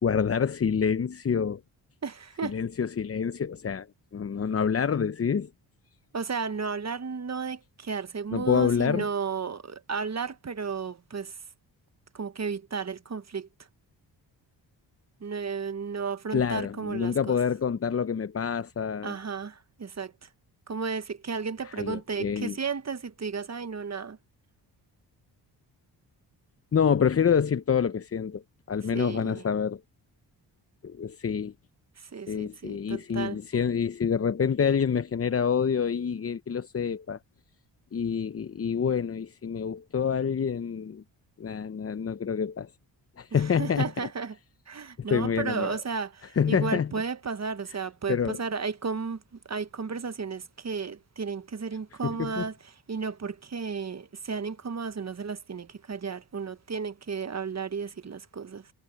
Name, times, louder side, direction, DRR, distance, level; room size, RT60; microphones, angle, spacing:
voice 1, 0.0-1.6 2.4-3.9 4.1-5.5 8.3-9.0 16.3-19.2 21.6-22.6 26.7-28.4 28.7-29.8 30.8-31.5 32.3-37.2 37.9-41.0 41.4-42.7 43.2-43.9 45.1-45.8 46.4-46.9 48.1-48.4 52.0-52.4, left 7 dB, 30° left, 0.8 m, -27 dB
voice 2, 2.0-2.6 6.1-11.4 12.1-13.7 15.2-17.4 19.0-20.3 20.7-24.2 28.9-29.4 32.0-33.4 43.3-44.4 44.7-58.7, right 5 dB, 35° right, 1.2 m, -34 dB
cardioid pair, 60°, 45 cm